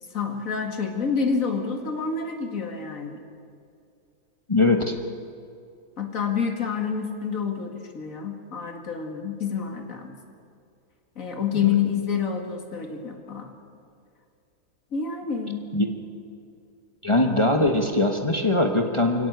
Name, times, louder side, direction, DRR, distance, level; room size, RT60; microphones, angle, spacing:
voice 1, 0.1-3.2 6.0-10.2 11.2-13.5 14.9-15.7, left 6 dB, 60° left, 4 dB, 2.4 m, -28 dB
voice 2, 4.5-4.9 11.6-11.8 15.7-15.9 17.0-19.3, left 2 dB, 20° left, 3 dB, 1.2 m, -21 dB
24.0 x 17.0 x 8.1 m, 2.4 s
omnidirectional pair, 1.6 m